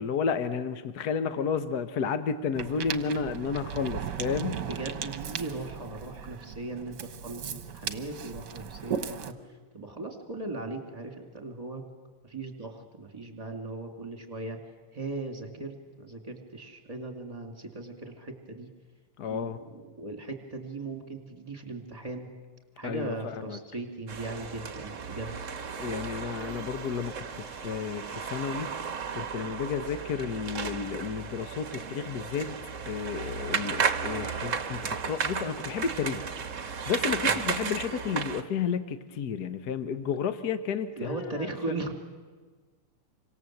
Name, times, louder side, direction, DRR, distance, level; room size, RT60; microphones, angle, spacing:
voice 1, 0.0-4.6 19.2-19.6 22.8-23.6 25.8-28.7 29.1-32.6 32.9-36.2 36.5-41.5, left 6 dB, 55° left, 10 dB, 1.3 m, -32 dB
Ocean, 2.5-9.3, right 8 dB, 55° right, 1.6 m, -37 dB
voice 2, 4.6-11.8 12.2-14.6 14.9-18.7 19.2-22.3 22.8-25.3 37.2-37.4 41.0-41.9, right 2 dB, 15° right, 4 dB, 2.9 m, -38 dB
sound 1, 24.1-38.4, right 6 dB, 40° right, 1.4 m, -34 dB
27.0 x 25.0 x 7.8 m, 1.4 s
omnidirectional pair, 2.4 m